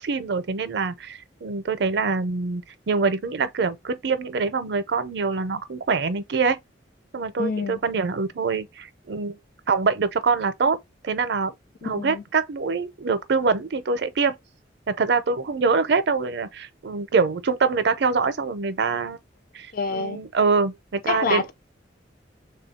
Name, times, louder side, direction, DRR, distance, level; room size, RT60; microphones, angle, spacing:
voice 1, 0.0-6.6 7.1-9.4 9.7-10.8 11.0-11.5 11.8-14.4 14.9-19.2 19.5-21.4, right 4 dB, 65° right, 0.5 m, -24 dB
voice 2, 7.4-7.8 11.8-12.2 19.7-20.2 21.1-21.5, left 5 dB, 50° left, 0.5 m, -27 dB
3.3 x 2.3 x 4.2 m
head